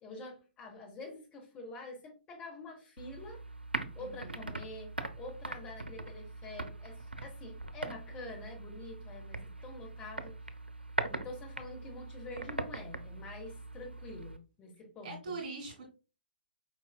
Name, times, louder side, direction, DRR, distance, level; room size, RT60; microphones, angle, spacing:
voice 1, 0.0-3.4 3.9-10.3 11.1-15.3, left 2 dB, 20° left, 0 dB, 1.1 m, -47 dB
sound 1, 3.0-14.4, right 2 dB, 90° right, 0.5 m, -41 dB
voice 2, 4.0-4.5 15.0-15.9, right 4 dB, 50° right, 0 dB, 2.1 m, -42 dB
4.8 x 4.0 x 2.2 m, 0.31 s
figure-of-eight pair, 120°, 5 cm